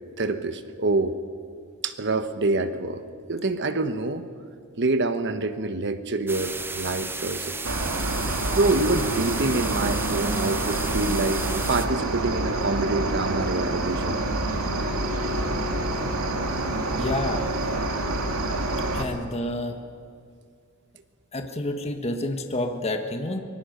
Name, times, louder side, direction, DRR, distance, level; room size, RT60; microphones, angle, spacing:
voice 1, 0.2-1.1 1.8-3.0 3.3-4.2 4.8-7.6 8.5-14.2 18.0-18.2, right 2 dB, 55° right, 10 dB, 1.2 m, -26 dB
sound 1, 6.3-11.9, right 3 dB, 10° right, 0.9 m, -33 dB
Cricket, 7.6-19.0, right 2 dB, 90° right, 2.4 m, -27 dB
voice 2, 17.0-17.4 18.9-19.8 21.3-23.4, left 1 dB, 30° left, 5 dB, 1.5 m, -29 dB
24.0 x 20.0 x 6.7 m, 2.3 s
head